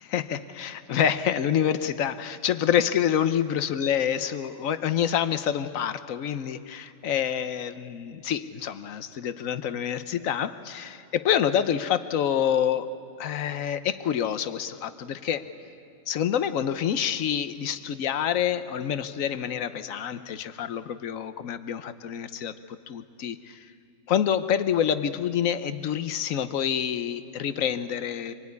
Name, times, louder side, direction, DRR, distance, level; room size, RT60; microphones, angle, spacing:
voice 1, 0.1-12.9 13.2-15.5 16.1-23.7 24.1-28.3, left 9 dB, 85° left, 12 dB, 1.2 m, -27 dB
26.5 x 19.5 x 9.6 m, 2.4 s
omnidirectional pair, 1.4 m